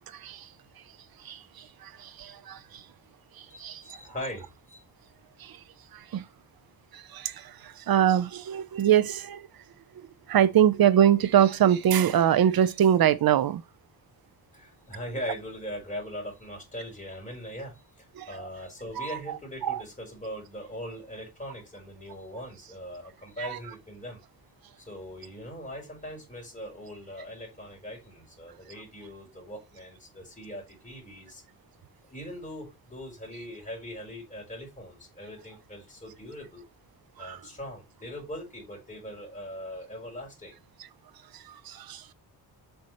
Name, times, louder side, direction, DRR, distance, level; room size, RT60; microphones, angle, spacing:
voice 1, 1.8-2.6 3.6-3.8 5.4-5.5 6.1-6.2 7.1-7.5 7.9-9.4 10.3-13.6 18.2-18.3 19.0-19.1 19.6-19.8 23.4-23.6 37.2-37.4 41.7-42.0, right 10 dB, 65° right, 0.9 m, -23 dB
voice 2, 3.5-4.8 14.5-24.2 24.8-31.4 32.1-36.7 37.2-40.6, equal, 20° left, 5.2 m, -40 dB
8.0 x 5.6 x 3.2 m
cardioid pair, 125°, 38 cm